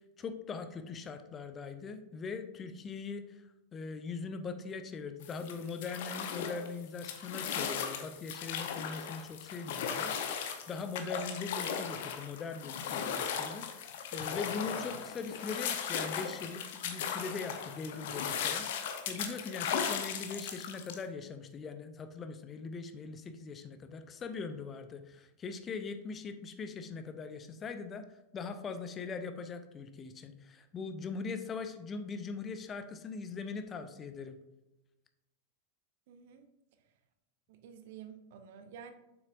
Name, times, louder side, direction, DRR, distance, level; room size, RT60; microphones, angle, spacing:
voice 1, 0.2-3.2 3.7-18.7 19.1-28.0 28.3-34.4, left 4 dB, 25° left, 9 dB, 0.5 m, -41 dB
sound 1, 5.2-21.0, left 7 dB, 55° left, 0.8 m, -37 dB
voice 2, 36.1-36.4 37.5-38.9, right 8 dB, 50° right, 9 dB, 0.6 m, -50 dB
7.4 x 5.9 x 2.6 m, 0.99 s
figure-of-eight pair, 90°, 0 cm